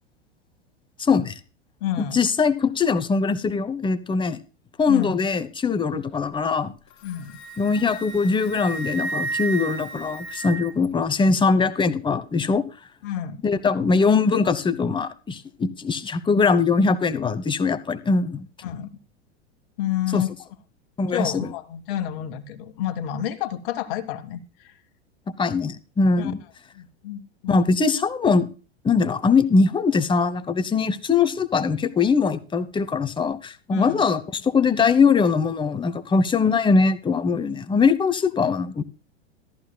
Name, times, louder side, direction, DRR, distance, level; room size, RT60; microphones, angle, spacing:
voice 1, 1.0-1.3 2.0-4.4 4.8-6.7 7.6-12.7 13.4-18.5 20.1-20.2 21.0-21.5 25.4-26.4 27.5-28.5 28.8-38.8, left 4 dB, 15° left, 0.9 m, -21 dB
voice 2, 1.8-2.2 4.9-5.2 5.9-6.0 7.0-7.4 13.0-13.4 18.6-18.9 19.8-20.3 21.1-24.7 26.2-26.3 26.7-27.6 33.7-34.0, left 11 dB, 55° left, 1.5 m, -29 dB
Wind instrument woodwind instrument, 6.9-10.9, right 3 dB, 35° left, 2.0 m, -33 dB
14.0 x 13.0 x 2.2 m
hypercardioid pair, 95°, 33 cm